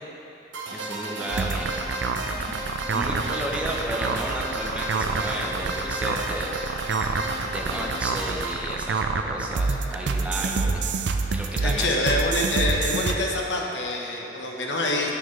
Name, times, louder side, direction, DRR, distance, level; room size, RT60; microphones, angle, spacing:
sound 1, 0.5-8.5, right 2 dB, 90° right, 1.0 m, -34 dB
voice 1, 0.7-1.7 2.3-2.5 2.9-6.6 7.4-10.8 11.3-11.9, equal, 5° right, -2 dB, 0.8 m, -33 dB
sound 2, 1.3-13.2, right 4 dB, 75° right, 0.5 m, -27 dB
voice 2, 11.6-15.1, left 2 dB, 75° left, -1 dB, 1.1 m, -26 dB
9.8 x 8.7 x 3.3 m, 2.9 s
head